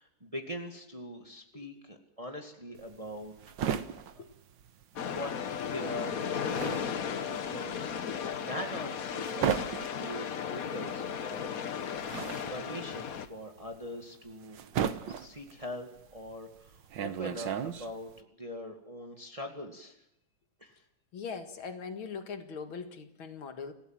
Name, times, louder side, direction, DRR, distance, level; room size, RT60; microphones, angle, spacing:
voice 1, 0.0-3.3 5.0-9.7 10.0-11.6 12.5-14.6 15.1-20.0 20.6-20.8, equal, 15° right, 3 dB, 2.1 m, -42 dB
sound 1, 2.8-5.3 5.6-18.2, right 8 dB, 70° right, 1.7 m, -36 dB
sound 2, 5.0-13.3, left 7 dB, 50° left, 1.3 m, -35 dB
voice 2, 21.1-23.7, left 5 dB, 85° left, 7 dB, 2.6 m, -40 dB
27.5 x 17.0 x 7.6 m, 0.84 s
omnidirectional pair, 2.2 m